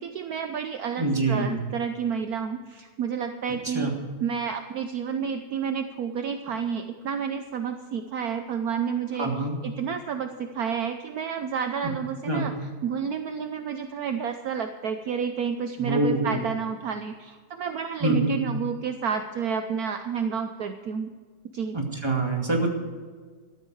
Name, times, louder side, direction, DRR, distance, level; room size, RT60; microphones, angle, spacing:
voice 1, 0.0-3.9 4.2-9.3 9.6-12.5 12.8-21.1 21.5-21.8, right 7 dB, 65° right, 7 dB, 1.2 m, -30 dB
voice 2, 1.0-1.6 3.7-3.9 9.2-9.6 11.8-11.9 12.2-12.5 15.8-16.4 18.0-18.4 21.7-22.7, right 2 dB, 15° right, 1 dB, 2.3 m, -25 dB
14.0 x 13.0 x 4.8 m, 1.5 s
omnidirectional pair, 1.8 m